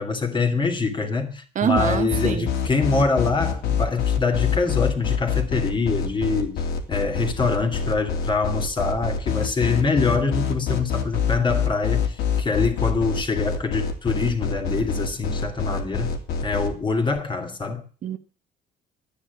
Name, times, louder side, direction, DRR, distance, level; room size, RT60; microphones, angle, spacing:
voice 1, 0.0-6.6 6.9-16.1 16.4-17.8, left 4 dB, 30° left, 3.2 m, -24 dB
voice 2, 1.5-2.5 18.0-18.2, right 8 dB, 50° right, 1.2 m, -24 dB
sound 1, 1.7-16.7, left 7 dB, 80° left, 3.3 m, -25 dB
12.0 x 9.7 x 8.5 m
cardioid pair, 110°, 17 cm